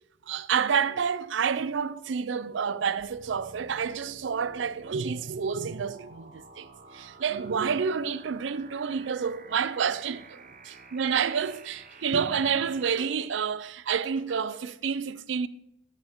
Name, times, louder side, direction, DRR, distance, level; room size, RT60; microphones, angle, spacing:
voice 1, 0.3-15.5, right 6 dB, 70° right, 0.4 m, -29 dB
sound 1, 3.0-13.0, right 3 dB, 45° right, 1.0 m, -51 dB
12.0 x 9.0 x 3.6 m
head